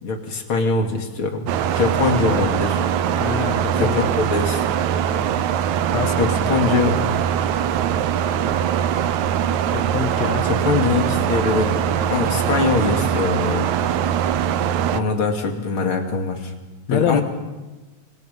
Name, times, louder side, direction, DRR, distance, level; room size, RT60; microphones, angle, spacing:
voice 1, 0.0-2.8 3.7-4.8 6.2-7.0 10.4-11.8 12.1-13.7 14.9-16.5 16.9-17.2, left 4 dB, 45° left, 4 dB, 3.1 m, -22 dB
sound 1, 1.5-15.0, right 9 dB, 80° right, 2.2 m, -22 dB
voice 2, 3.2-4.1 5.9-6.1 9.7-10.5 16.9-17.2, left 8 dB, 65° left, 9 dB, 2.5 m, -24 dB
29.0 x 25.0 x 5.5 m, 1.2 s
omnidirectional pair, 3.3 m